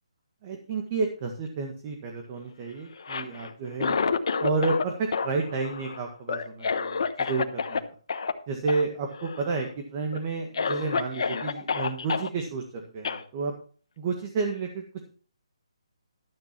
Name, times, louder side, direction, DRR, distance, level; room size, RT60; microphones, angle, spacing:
voice 1, 0.4-4.0 4.4-7.8 8.5-13.5 14.0-15.1, right 4 dB, 30° right, 3 dB, 1.6 m, -31 dB
Cough, 2.9-4.9 5.1-7.8 8.1-8.3 8.7-8.8 9.1-9.7 10.1-10.2 10.5-12.3 13.0-13.2, left 5 dB, 60° left, 1.1 m, -29 dB
12.5 x 7.8 x 4.4 m, 0.42 s
hypercardioid pair, 155°, 3 cm